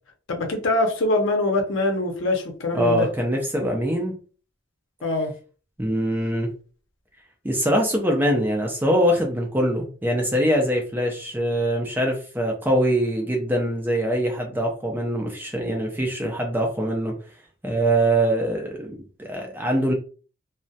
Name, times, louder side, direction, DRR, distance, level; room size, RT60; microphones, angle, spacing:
voice 1, 0.3-3.1 5.0-5.3, left 2 dB, 65° left, 0.6 m, -23 dB
voice 2, 2.7-4.2 5.8-6.5 7.4-17.1 17.6-18.9 19.2-19.9, right 1 dB, 10° right, 0.4 m, -23 dB
2.3 x 2.1 x 2.6 m
head